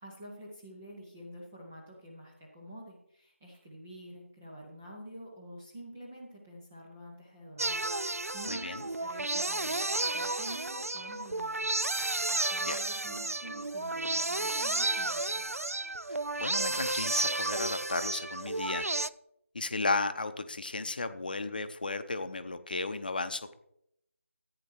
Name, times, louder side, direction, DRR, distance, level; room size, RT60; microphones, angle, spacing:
voice 1, 0.0-15.6, equal, 5° right, -3 dB, 0.3 m, -48 dB
sound 1, 7.6-19.1, right 2 dB, 80° right, 0.4 m, -32 dB
voice 2, 8.5-8.8 12.6-12.8 16.4-18.9 19.5-23.5, left 3 dB, 35° left, 11 dB, 0.6 m, -34 dB
14.0 x 8.9 x 3.1 m, 0.77 s
figure-of-eight pair, 165°, 8 cm